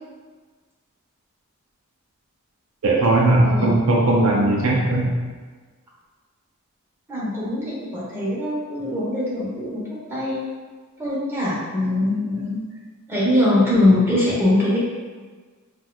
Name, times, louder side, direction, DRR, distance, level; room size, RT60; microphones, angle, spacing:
voice 1, 2.8-5.1, right 2 dB, 70° right, -2 dB, 0.5 m, -18 dB
voice 2, 3.4-3.9 7.1-10.4 11.0-12.6 13.1-14.8, left 1 dB, 10° right, -8 dB, 1.0 m, -22 dB
4.1 x 2.4 x 2.4 m, 1.5 s
head